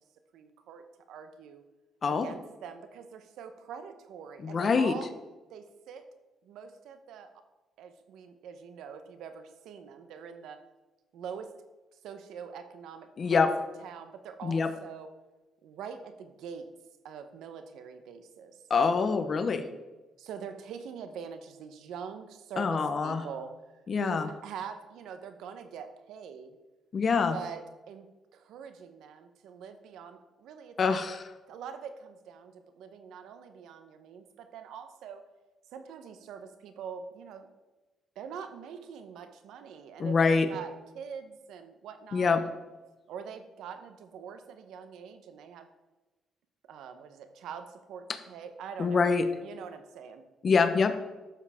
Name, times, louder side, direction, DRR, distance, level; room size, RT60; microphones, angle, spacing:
voice 1, 0.3-1.6 2.1-5.1 5.5-6.0 6.4-7.3 7.8-10.6 11.1-11.5 11.9-13.4 13.8-15.1 15.6-16.7 17.0-18.6 20.2-26.6 27.3-27.6 27.9-31.0 31.5-35.2 35.7-37.5 38.2-42.6 43.1-45.7 46.7-49.1 49.4-50.2, right 7 dB, 85° right, 8 dB, 1.0 m, -44 dB
voice 2, 4.4-4.9 13.2-13.5 14.4-14.7 18.7-19.6 22.6-23.2 23.9-24.3 26.9-27.4 30.8-31.2 40.0-40.5 42.1-42.4 48.8-49.2 50.4-50.9, left 5 dB, 45° left, 9 dB, 1.0 m, -25 dB
12.5 x 7.4 x 3.6 m, 1.1 s
cardioid pair, 90°, 0 cm